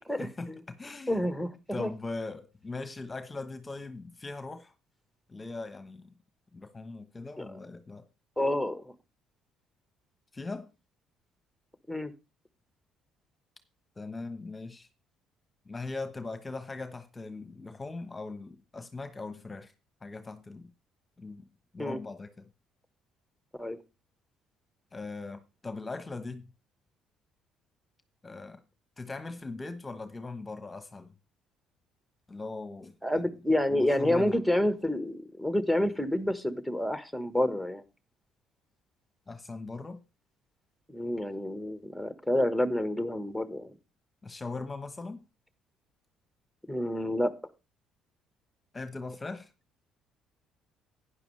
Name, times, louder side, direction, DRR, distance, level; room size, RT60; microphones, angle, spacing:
voice 1, 0.2-1.2 1.7-4.7 5.3-6.1 6.5-8.0 10.3-10.7 14.0-14.9 15.7-19.7 20.0-20.7 21.2-21.5 21.7-22.5 24.9-26.5 28.2-28.6 29.0-31.1 32.3-33.4 33.7-34.4 39.3-40.0 44.2-45.2 48.7-49.5, left 3 dB, 20° left, 1.1 m, -40 dB
voice 2, 1.1-1.5 1.8-1.9 7.4-7.5 8.4-8.8 11.9-12.1 21.8-22.0 23.6-23.8 33.0-37.8 40.9-43.7 46.7-47.3, left 1 dB, ahead, 1.4 m, -28 dB
12.0 x 9.8 x 3.3 m
supercardioid pair, 80°, 0 cm